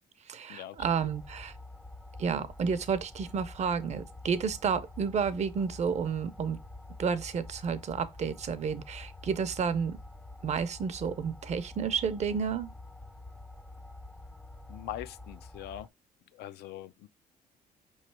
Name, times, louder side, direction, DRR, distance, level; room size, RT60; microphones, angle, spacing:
voice 1, 0.3-1.5 2.2-6.6 7.0-10.0 10.4-12.7, right 6 dB, 40° right, 0.6 m, -31 dB
sound 1, 0.8-15.9, left 2 dB, 5° left, 0.4 m, -47 dB
voice 2, 14.7-15.9 16.3-17.1, left 12 dB, 75° left, 0.4 m, -42 dB
4.9 x 3.2 x 3.2 m
cardioid pair, 110°, 17 cm